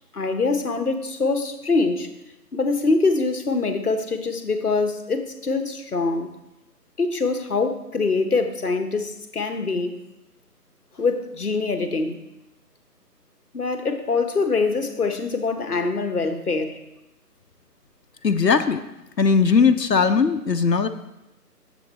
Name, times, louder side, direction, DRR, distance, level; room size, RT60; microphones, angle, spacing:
voice 1, 0.1-2.1 2.5-6.3 7.0-10.0 11.0-12.2 13.5-16.8, left 3 dB, 65° left, 7 dB, 1.1 m, -24 dB
voice 2, 18.2-18.8 19.2-20.9, left 5 dB, 85° left, 9 dB, 0.8 m, -18 dB
10.5 x 7.2 x 3.3 m, 0.93 s
figure-of-eight pair, 155°, 49 cm